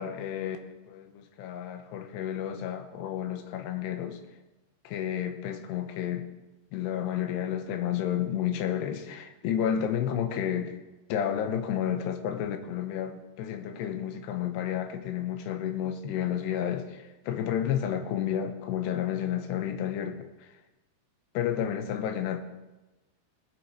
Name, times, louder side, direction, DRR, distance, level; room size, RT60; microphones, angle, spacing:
voice 1, 0.0-4.2 4.8-6.3 6.7-10.8 11.1-20.5 21.3-22.4, left 9 dB, 80° left, 6 dB, 3.1 m, -31 dB
20.0 x 9.3 x 4.8 m, 1.1 s
omnidirectional pair, 4.9 m